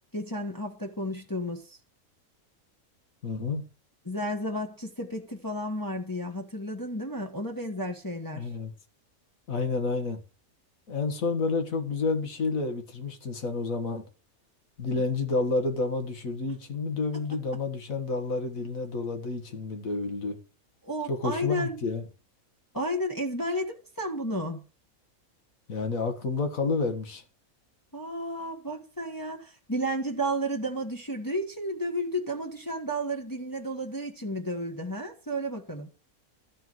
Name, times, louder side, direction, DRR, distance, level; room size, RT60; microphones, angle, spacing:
voice 1, 0.0-1.8 4.0-8.5 20.8-21.8 22.7-24.6 27.9-36.1, equal, 15° left, 1.3 m, -32 dB
voice 2, 3.2-3.6 8.3-8.7 9.5-10.2 10.9-14.1 14.8-20.4 21.1-22.0 25.7-27.2, left 3 dB, 70° left, 2.0 m, -29 dB
13.0 x 4.6 x 7.7 m
omnidirectional pair, 1.5 m